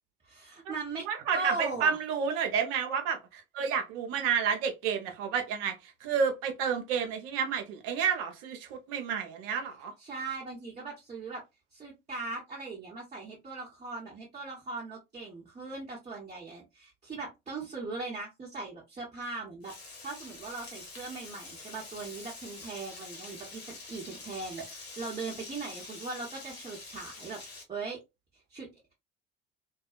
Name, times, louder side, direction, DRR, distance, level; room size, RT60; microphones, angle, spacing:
voice 1, 0.2-1.0 1.3-2.0 10.0-11.4 11.7-27.4 27.7-28.0 28.3-28.8, right 3 dB, 20° right, 1.2 m, -39 dB
voice 2, 1.1-9.9, right 7 dB, 65° right, 0.8 m, -30 dB
Frying (food), 19.6-27.6, left 3 dB, 75° left, 1.3 m, -46 dB
2.6 x 2.3 x 2.4 m
figure-of-eight pair, 60°, 31 cm